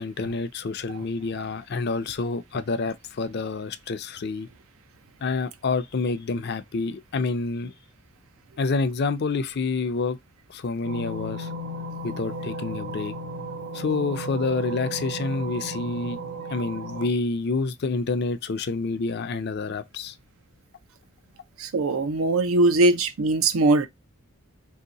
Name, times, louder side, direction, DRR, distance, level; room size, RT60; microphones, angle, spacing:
voice 1, 0.0-4.5 5.2-7.7 8.6-10.2 10.5-11.5 12.0-13.1 13.7-16.2 16.5-20.1, left 3 dB, 50° left, 0.4 m, -28 dB
sound 1, 10.8-17.1, right 1 dB, 60° right, 1.2 m, -34 dB
voice 2, 21.6-23.9, right 2 dB, 75° right, 0.6 m, -21 dB
3.0 x 2.8 x 3.8 m
head